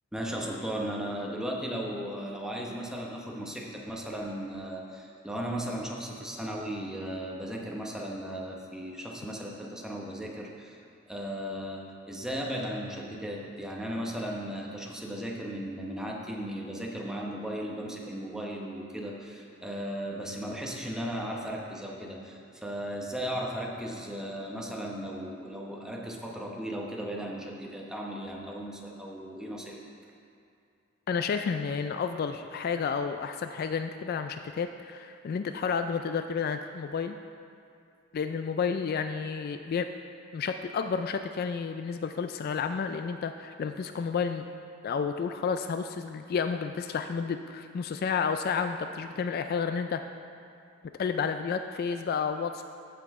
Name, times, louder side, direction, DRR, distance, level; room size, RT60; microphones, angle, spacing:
voice 1, 0.1-10.8 11.1-29.8, equal, 5° right, -2 dB, 1.0 m, -36 dB
voice 2, 31.1-37.2 38.1-39.9 40.3-44.5 44.8-50.0 51.0-52.6, left 6 dB, 50° left, 8 dB, 0.3 m, -31 dB
14.5 x 5.8 x 3.6 m, 2.5 s
head